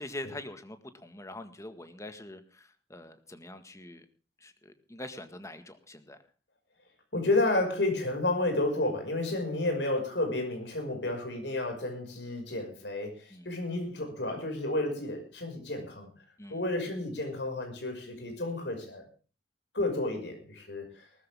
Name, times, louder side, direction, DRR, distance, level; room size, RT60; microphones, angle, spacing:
voice 1, 0.0-4.1 4.4-6.2 13.3-13.5 16.4-16.6, left 1 dB, 20° left, 9 dB, 1.7 m, -44 dB
voice 2, 7.1-16.1 16.5-19.0 19.7-21.1, left 2 dB, 80° left, 4 dB, 5.8 m, -31 dB
20.0 x 13.5 x 3.6 m, 0.36 s
head